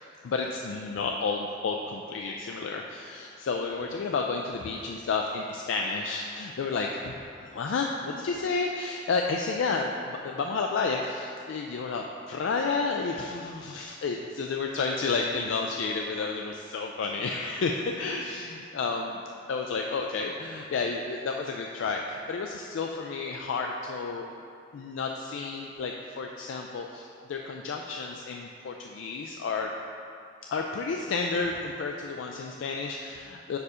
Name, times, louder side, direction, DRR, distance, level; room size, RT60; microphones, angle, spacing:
voice 1, 0.2-19.2 19.5-24.3 24.7-29.7 30.5-33.6, left 4 dB, 75° left, 1 dB, 0.3 m, -31 dB
4.8 x 4.7 x 5.0 m, 2.4 s
head